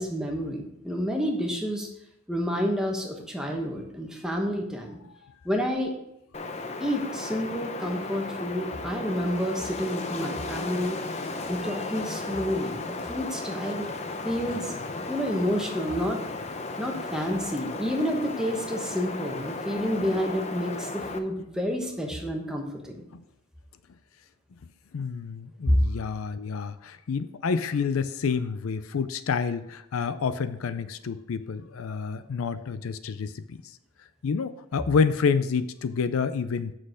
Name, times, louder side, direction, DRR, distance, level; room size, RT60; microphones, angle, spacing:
voice 1, 0.0-1.9 2.3-5.0 5.4-5.9 6.8-11.0 11.5-13.9 14.2-14.8 15.1-16.2 16.8-23.0 25.7-25.8, equal, 5° right, 0 dB, 1.1 m, -29 dB
Wind, 6.3-21.2, left 3 dB, 30° left, 0.5 m, -35 dB
voice 2, 24.9-33.6 34.2-36.7, left 5 dB, 75° left, 13 dB, 0.4 m, -28 dB
7.6 x 6.3 x 5.0 m, 0.82 s
head